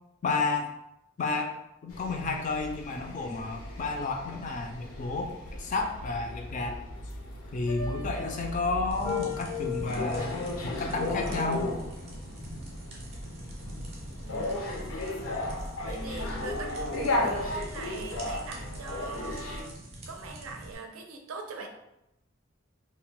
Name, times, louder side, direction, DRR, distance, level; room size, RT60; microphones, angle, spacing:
voice 1, 0.2-0.7 1.2-1.5 1.8-5.3 5.6-6.8 7.5-10.3 10.6-11.7, left 3 dB, 35° left, 3 dB, 0.3 m, -31 dB
sound 1, 1.9-19.6, left 2 dB, 85° left, 0.5 m, -35 dB
sound 2, 8.9-20.7, right 1 dB, 30° right, 0.5 m, -44 dB
voice 2, 14.2-14.9 15.8-19.8 20.1-21.7, right 4 dB, 90° right, 3 dB, 0.5 m, -41 dB
2.1 x 2.0 x 3.7 m, 0.85 s
head